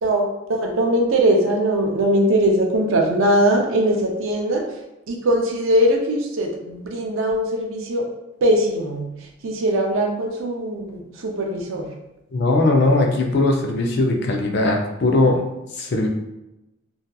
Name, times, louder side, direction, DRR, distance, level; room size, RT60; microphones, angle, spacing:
voice 1, 0.0-4.6 5.1-8.0 8.4-9.1 9.4-11.9, right 1 dB, 65° right, 1 dB, 0.5 m, -20 dB
voice 2, 12.3-16.1, left 2 dB, 50° left, 1 dB, 0.4 m, -19 dB
2.7 x 2.3 x 2.2 m, 0.93 s
head